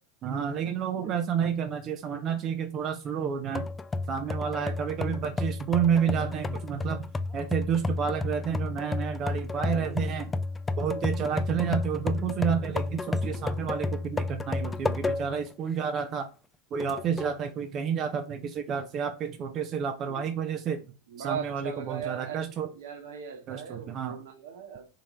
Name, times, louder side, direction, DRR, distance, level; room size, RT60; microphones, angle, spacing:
voice 1, 0.2-3.7 4.1-7.1 7.3-10.3 10.8-16.3 16.7-20.8 21.2-22.7 23.5-24.2, right 7 dB, 40° right, 0.5 m, -30 dB
voice 2, 0.9-1.4 4.6-5.0 9.6-10.0 13.2-13.7 20.0-20.5 21.1-24.9, right 7 dB, 70° right, 1.1 m, -40 dB
sound 1, 3.5-15.5 15.9-16.0 16.8-17.4, left 3 dB, 15° left, 0.4 m, -32 dB
3.7 x 3.1 x 3.7 m
hypercardioid pair, 90°, 0 cm